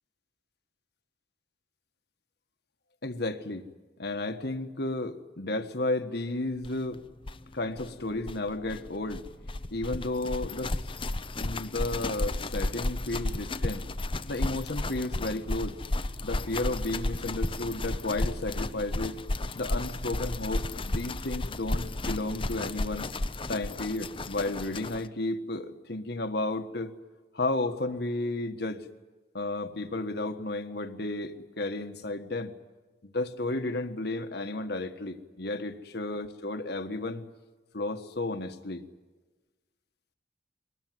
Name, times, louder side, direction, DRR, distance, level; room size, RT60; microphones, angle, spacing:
voice 1, 3.0-3.7 4.0-7.0 7.5-9.3 9.7-10.8 11.4-13.9 14.3-15.8 16.2-19.2 19.5-23.1 23.5-26.9 27.3-28.8 29.3-32.5 33.0-37.2 37.7-38.8, left 2 dB, 60° left, 8 dB, 1.6 m, -33 dB
sound 1, 6.6-6.7 6.9-7.0 7.2-25.1, left 2 dB, 30° left, 0.8 m, -33 dB
23.0 x 19.5 x 9.4 m, 1.3 s
head